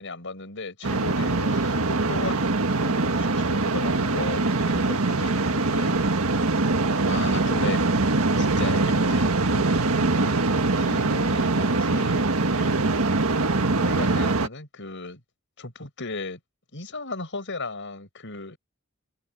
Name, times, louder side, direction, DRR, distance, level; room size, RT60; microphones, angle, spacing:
voice 1, 0.0-6.0 7.0-7.8 8.4-12.3 12.6-12.9 13.8-15.2 15.6-16.4 16.7-18.6, left 3 dB, 60° left, 7.6 m, -36 dB
sound 1, 0.8-14.5, right 3 dB, 75° right, 1.6 m, -23 dB
head